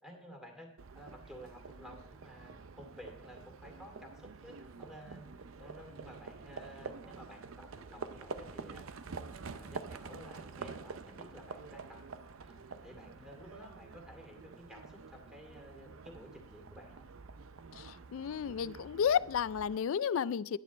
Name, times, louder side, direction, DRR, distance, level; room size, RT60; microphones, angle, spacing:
voice 1, 0.0-12.0 12.4-17.1, equal, 5° right, 1 dB, 2.3 m, -53 dB
Livestock farm animals working animals, 0.8-19.8, right 4 dB, 80° right, 0.6 m, -48 dB
voice 2, 18.1-20.6, left 8 dB, 70° left, 19 dB, 0.3 m, -31 dB
11.0 x 9.2 x 4.1 m, 0.73 s
head